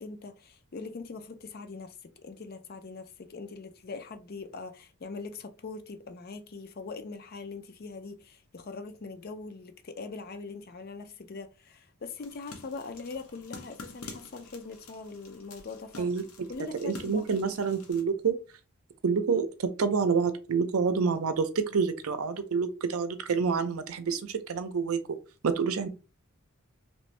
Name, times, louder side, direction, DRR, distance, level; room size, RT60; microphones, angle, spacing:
voice 1, 0.0-16.1 16.5-17.4, left 4 dB, 45° left, 0.5 m, -42 dB
sound 1, 12.2-18.0, left 3 dB, 80° left, 0.8 m, -48 dB
voice 2, 16.0-16.5 16.8-18.4 19.0-25.0 25.4-25.9, right 5 dB, 80° right, 0.5 m, -28 dB
3.0 x 2.6 x 3.1 m
head